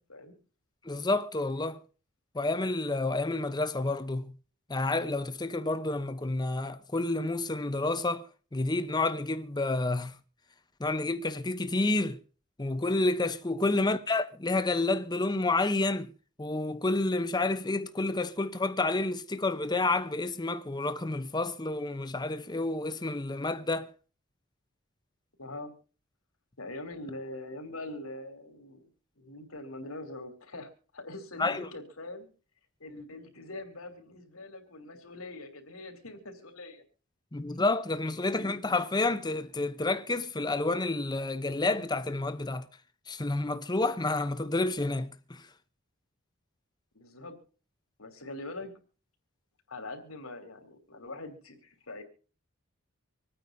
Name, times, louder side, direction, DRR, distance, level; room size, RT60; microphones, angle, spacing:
voice 1, 0.8-1.8 2.3-4.3 4.7-8.2 8.5-10.1 10.8-12.2 12.6-16.1 16.4-23.9 31.4-31.7 37.3-42.7 43.1-45.4, left 2 dB, 20° left, 0.8 m, -29 dB
voice 2, 25.4-25.7 26.6-28.9 29.2-32.3 32.8-36.8 37.5-37.6 38.0-38.2 46.9-47.4 48.0-48.7 49.7-52.0, left 2 dB, 85° left, 3.2 m, -43 dB
26.0 x 9.3 x 2.7 m
head